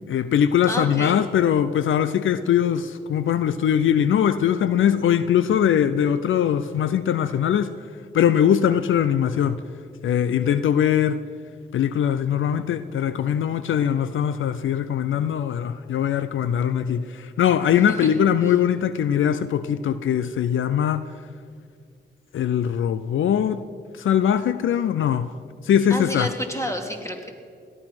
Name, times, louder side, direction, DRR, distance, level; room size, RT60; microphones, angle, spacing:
voice 1, 0.1-7.7 8.1-9.6 10.0-11.2 11.7-21.1 22.3-23.6 24.0-25.3 25.6-26.3, left 9 dB, 75° left, 0.5 m, -21 dB
voice 2, 0.7-1.2 17.9-18.1 25.9-27.3, equal, 15° left, 3.0 m, -30 dB
17.5 x 12.5 x 6.0 m
supercardioid pair, 40°, 20 cm